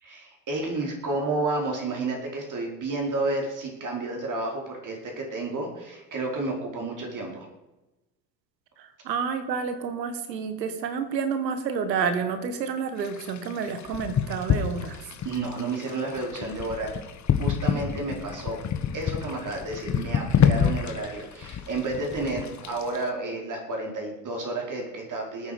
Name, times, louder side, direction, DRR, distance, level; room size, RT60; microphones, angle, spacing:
voice 1, 0.0-7.5 15.2-16.9 17.4-18.6 18.9-25.5, right 2 dB, 40° right, 0 dB, 4.9 m, -31 dB
voice 2, 8.8-15.0, right 6 dB, 80° right, 10 dB, 1.7 m, -29 dB
sound 1, 13.0-23.1, left 8 dB, 35° left, 1.6 m, -28 dB
19.5 x 9.3 x 5.3 m, 1.0 s
hypercardioid pair, 65°, 49 cm